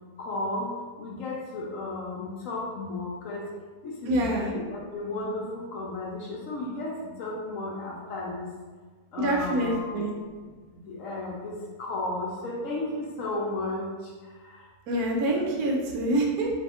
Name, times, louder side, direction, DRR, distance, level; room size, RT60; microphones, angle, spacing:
voice 1, 0.2-0.7 1.0-3.5 3.8-8.5 9.1-10.0 10.9-13.9 14.5-14.6, left 2 dB, 70° left, -3 dB, 0.8 m, -33 dB
voice 2, 4.1-4.5 9.2-10.1 14.9-16.5, right 1 dB, 75° right, 0 dB, 1.0 m, -26 dB
2.7 x 2.3 x 3.5 m, 1.4 s
omnidirectional pair, 1.6 m